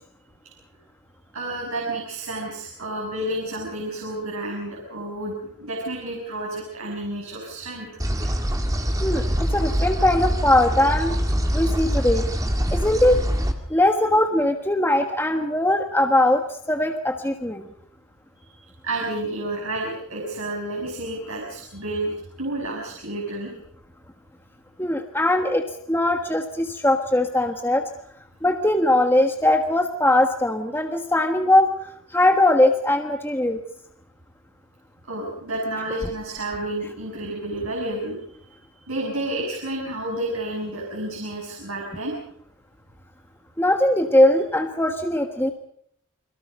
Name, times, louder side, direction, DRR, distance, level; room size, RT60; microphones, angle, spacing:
voice 1, 1.3-8.0 13.7-13.8 18.4-23.5 35.1-38.2 38.8-42.2, right 1 dB, 90° right, -1 dB, 6.8 m, -30 dB
sound 1, 8.0-13.5, equal, 15° right, 2.2 m, -24 dB
voice 2, 9.0-11.1 11.5-12.2 12.7-13.2 13.7-17.7 24.8-27.8 28.4-33.6 43.6-45.5, left 1 dB, 10° left, 5 dB, 1.3 m, -20 dB
29.5 x 22.5 x 5.4 m, 0.67 s
head